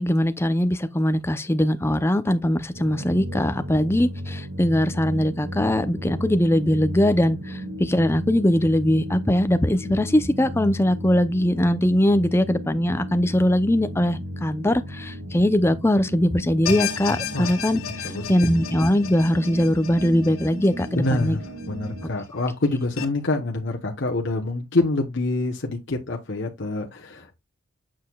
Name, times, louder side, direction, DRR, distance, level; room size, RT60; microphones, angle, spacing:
voice 1, 0.0-21.4, left 1 dB, 10° left, 0.5 m, -21 dB
sound 1, 2.7-22.1, equal, 70° right, 1.8 m, -35 dB
sound 2, 16.7-21.9 22.2-22.3 23.0-23.1, left 7 dB, 80° left, 1.5 m, -33 dB
voice 2, 18.0-18.5 20.9-27.4, left 2 dB, 55° left, 1.0 m, -26 dB
7.5 x 6.5 x 2.3 m
head